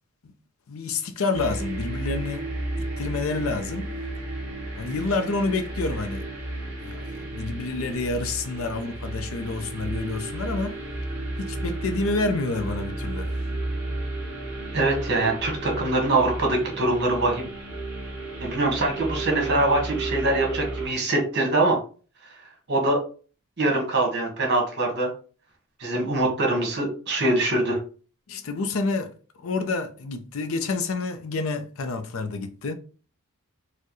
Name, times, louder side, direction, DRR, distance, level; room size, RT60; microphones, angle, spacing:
voice 1, 0.7-2.4 3.0-3.9 4.8-6.3 6.8-10.8 11.4-13.3 28.3-29.1 29.4-32.7, left 3 dB, 65° left, 0.5 m, -28 dB
sound 1, 1.3-20.9, right 2 dB, 5° right, 1.8 m, -33 dB
voice 2, 14.7-17.4 18.4-21.8 22.7-23.0 23.6-25.1 25.8-27.8, right 2 dB, 50° right, 1.3 m, -23 dB
4.3 x 2.2 x 3.0 m
head